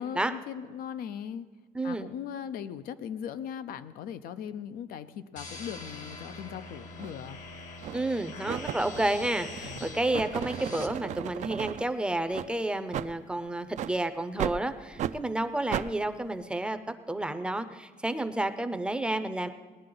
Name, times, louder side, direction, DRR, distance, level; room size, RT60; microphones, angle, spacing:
voice 1, 0.0-1.5 1.8-7.4 9.6-9.9, left 8 dB, 85° left, 13 dB, 0.6 m, -39 dB
voice 2, 1.7-2.1 7.9-16.8 17.1-19.5, right 1 dB, 5° right, 9 dB, 0.5 m, -30 dB
sound 1, 5.4-10.9, left 3 dB, 60° left, 1.2 m, -44 dB
sound 2, 7.0-7.1 7.8-8.1 8.5-11.9 12.3-12.5 12.9-13.1 13.7-13.9 14.4-14.6 15.0-15.2 15.7-15.9, right 11 dB, 55° right, 0.4 m, -35 dB
18.5 x 10.5 x 3.9 m, 1.4 s
cardioid pair, 145°, 15 cm